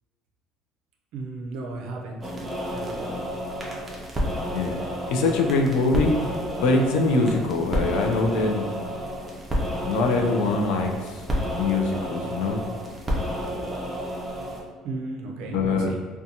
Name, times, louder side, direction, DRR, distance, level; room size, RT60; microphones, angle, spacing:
voice 1, 1.1-2.3 2.7-3.2 14.8-16.0, right 2 dB, 70° right, 1 dB, 0.4 m, -35 dB
sound 1, 2.2-14.6, equal, 15° right, 0.5 m, -30 dB
voice 2, 5.1-6.1 6.6-8.7 9.8-11.2 11.6-12.6 15.5-15.9, left 3 dB, 80° left, 3 dB, 0.3 m, -23 dB
2.5 x 2.2 x 2.7 m, 1.4 s
cardioid pair, 150°, 0 cm